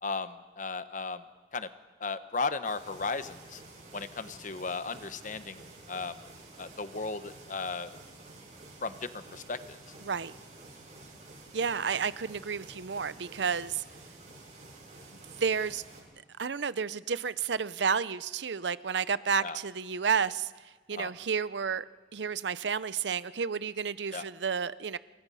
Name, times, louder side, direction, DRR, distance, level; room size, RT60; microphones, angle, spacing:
voice 1, 0.0-1.2 1.5-1.7 2.0-3.6 3.9-6.2 6.6-7.9 8.8-9.8 19.4-19.6 20.9-21.1 24.1-24.2, left 4 dB, 45° left, 12 dB, 1.0 m, -35 dB
sound 1, 2.6-16.0, right 2 dB, 45° right, 7.8 m, -51 dB
voice 2, 10.0-10.3 11.5-13.8 15.4-15.8 16.4-20.5 20.9-21.8 22.1-25.0, right 6 dB, 85° right, 17 dB, 0.7 m, -31 dB
28.0 x 24.5 x 5.6 m, 1.4 s
head